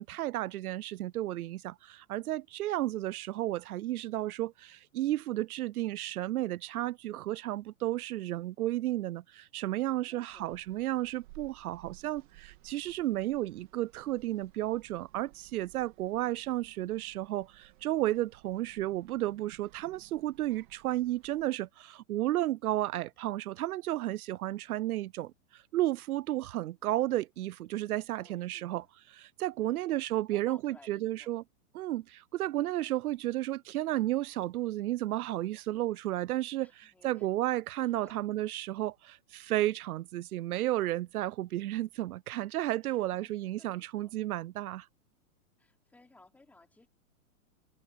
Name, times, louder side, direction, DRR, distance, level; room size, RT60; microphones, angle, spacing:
voice 1, 0.0-28.8 29.2-31.4 31.7-44.9, right 15 dB, 80° right, 0.6 m, -33 dB
voice 2, 10.1-10.6 28.2-28.9 29.6-30.0 30.3-31.3 36.6-37.3 37.8-38.2 42.9-44.2 45.6-46.9, left 2 dB, 5° left, 3.7 m, -59 dB
sound 1, 10.3-21.5, right 21 dB, 35° right, 3.1 m, -58 dB
open air
supercardioid pair, 175°, 44 cm